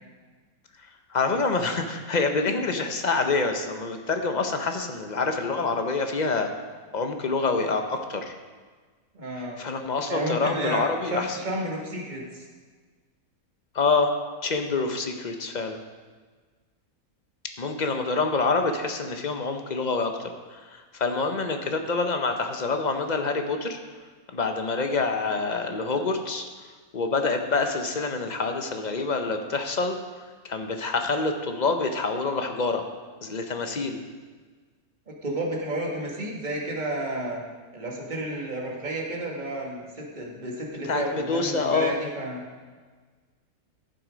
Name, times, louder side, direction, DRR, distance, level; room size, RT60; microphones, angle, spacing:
voice 1, 1.1-6.5 6.9-8.3 9.6-11.4 13.7-14.1 14.4-15.8 17.6-20.1 20.5-23.8 24.3-26.4 26.9-30.0 30.4-32.8 33.2-34.0 40.8-41.9, left 3 dB, 40° left, 5 dB, 0.7 m, -26 dB
voice 2, 9.1-9.6 10.1-12.4 35.1-37.4 37.7-42.4, right 1 dB, 30° right, -2 dB, 1.8 m, -31 dB
12.0 x 7.4 x 5.1 m, 1.4 s
omnidirectional pair, 1.6 m